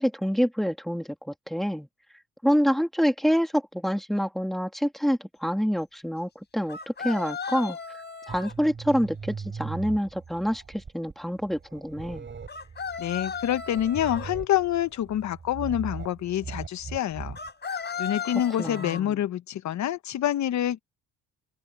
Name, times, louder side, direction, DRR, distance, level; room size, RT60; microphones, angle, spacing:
voice 1, 0.0-1.9 2.4-7.8 8.3-12.2 18.6-19.2, equal, ahead, 2.7 m, -27 dB
sound 1, 6.7-8.5 12.5-14.3 17.4-19.0, left 6 dB, 35° left, 4.6 m, -35 dB
sound 2, 8.3-17.5, right 5 dB, 40° right, 7.7 m, -40 dB
voice 2, 13.0-17.4 17.7-20.8, left 11 dB, 65° left, 1.1 m, -27 dB
open air
cardioid pair, 90°, 30 cm